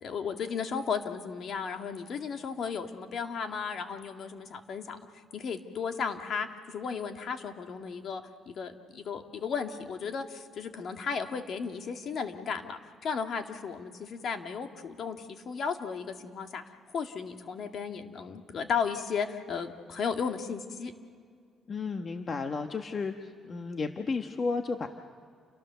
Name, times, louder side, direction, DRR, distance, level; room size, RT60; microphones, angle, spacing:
voice 1, 0.0-5.0 5.3-16.6 16.9-20.9, left 6 dB, 60° left, 5 dB, 2.1 m, -35 dB
voice 2, 21.7-24.9, left 4 dB, 45° left, 5 dB, 1.4 m, -33 dB
29.5 x 23.5 x 6.9 m, 2.2 s
cardioid pair, 90°, 0 cm